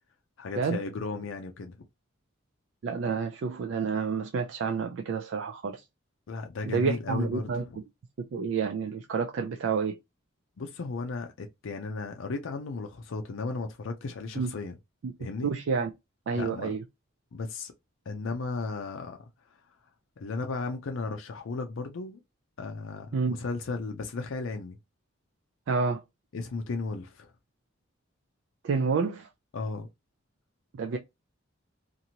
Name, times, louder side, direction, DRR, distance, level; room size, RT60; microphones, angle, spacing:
voice 1, 0.4-1.8 6.3-7.8 10.6-14.8 15.2-15.5 16.3-16.7 17.3-17.7 18.1-19.2 20.2-22.2 22.6-24.8 26.3-27.3 29.5-29.9, left 3 dB, 70° left, 0.4 m, -35 dB
voice 2, 2.8-5.8 6.7-7.6 8.3-10.0 14.4-14.5 15.0-15.1 15.4-15.9 16.3-16.8 23.1-23.4 25.7-26.0 28.6-29.3 30.7-31.0, right 5 dB, 60° right, 0.3 m, -29 dB
2.8 x 2.5 x 2.7 m
head